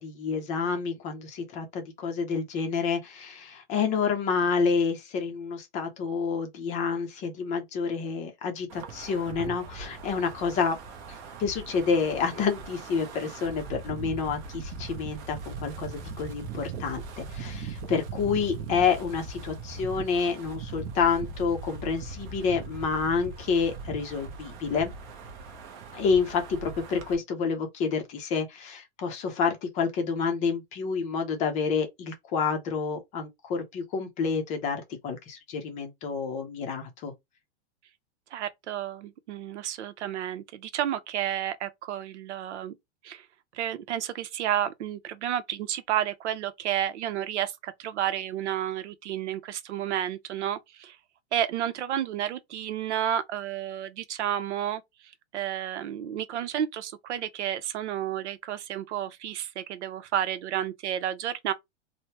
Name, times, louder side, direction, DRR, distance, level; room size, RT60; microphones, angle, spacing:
voice 1, 0.0-10.8 11.4-24.9 25.9-37.1, left 5 dB, 20° left, 0.5 m, -29 dB
Wind, 8.7-27.2, right 4 dB, 35° right, 0.6 m, -40 dB
voice 2, 38.3-42.7 43.0-43.3 43.5-51.0 51.3-54.8 55.3-61.5, right 10 dB, 80° right, 0.7 m, -31 dB
3.2 x 2.1 x 2.8 m
supercardioid pair, 155°, 34 cm